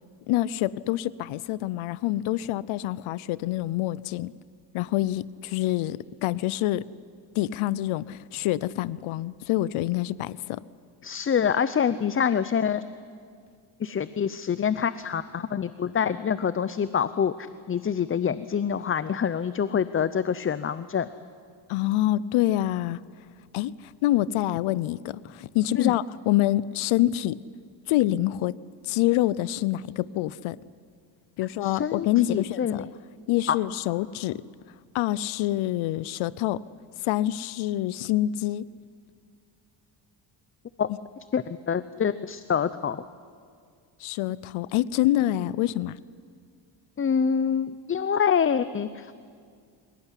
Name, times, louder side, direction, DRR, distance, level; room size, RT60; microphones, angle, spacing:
voice 1, 0.3-4.3 4.7-6.9 7.4-10.6 21.7-23.0 23.5-27.4 27.9-28.5 28.8-30.6 31.4-32.9 33.3-34.4 34.9-36.6 37.0-38.7 44.0-46.0, left 14 dB, 85° left, 20 dB, 0.7 m, -26 dB
voice 2, 11.0-12.8 13.8-17.3 17.7-21.1 25.8-25.9 31.6-32.9 33.5-33.6 40.8-40.9 41.3-43.0 47.0-49.1, left 7 dB, 25° left, 14 dB, 0.6 m, -26 dB
26.5 x 17.5 x 9.9 m, 2.2 s
cardioid pair, 110°, 47 cm